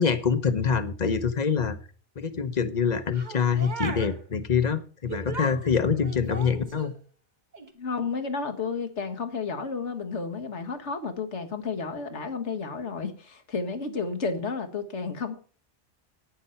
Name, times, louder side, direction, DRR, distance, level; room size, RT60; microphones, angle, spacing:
voice 1, 0.0-1.8 2.2-6.9, left 6 dB, 40° left, 11 dB, 1.0 m, -25 dB
sound 1, 3.1-4.2 5.1-7.0 7.5-7.7, right 2 dB, 40° right, 1.4 m, -37 dB
voice 2, 7.8-15.4, left 4 dB, 85° left, 6 dB, 1.8 m, -32 dB
10.5 x 9.2 x 5.7 m, 0.39 s
omnidirectional pair, 1.2 m